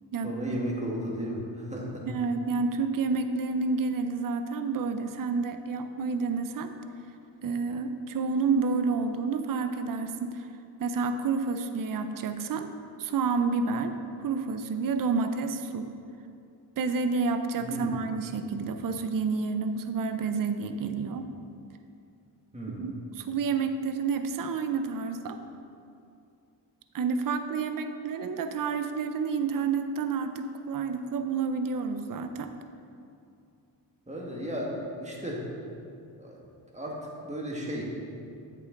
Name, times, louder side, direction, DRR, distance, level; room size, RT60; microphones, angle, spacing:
voice 1, 0.2-2.1 17.6-18.0 22.5-22.9 34.1-35.5 36.2-36.4 36.7-37.8, equal, 15° right, -3 dB, 1.7 m, -35 dB
voice 2, 2.1-6.7 7.4-10.5 10.8-12.7 13.0-15.9 16.8-21.3 22.8-25.4 26.9-32.5, right 4 dB, 50° right, 8 dB, 0.6 m, -29 dB
8.2 x 6.8 x 3.8 m, 2.5 s
cardioid pair, 70°, 43 cm